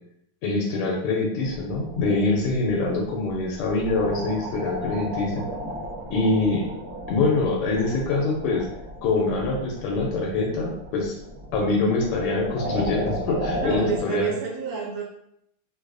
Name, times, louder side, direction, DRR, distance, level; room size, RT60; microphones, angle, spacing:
voice 1, 0.4-5.4 6.1-6.7 7.1-8.7 9.0-11.2 11.5-14.3, left 3 dB, 85° left, -1 dB, 1.5 m, -24 dB
sound 1, 1.4-14.0, right 1 dB, 70° right, 0.6 m, -35 dB
voice 2, 13.5-15.0, right 5 dB, 90° right, -2 dB, 1.8 m, -29 dB
4.8 x 2.3 x 2.4 m, 0.75 s
omnidirectional pair, 2.4 m